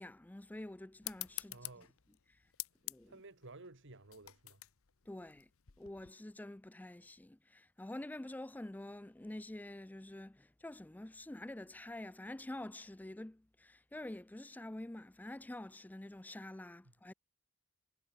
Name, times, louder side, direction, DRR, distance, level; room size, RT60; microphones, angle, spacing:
voice 1, 0.0-1.9 2.8-3.2 5.1-5.5 5.8-17.1, left 1 dB, 10° left, 0.4 m, -47 dB
sound 1, 1.0-6.1, left 18 dB, 65° left, 1.0 m, -48 dB
voice 2, 1.5-1.9 3.1-4.6, right 2 dB, 60° right, 2.2 m, -54 dB
head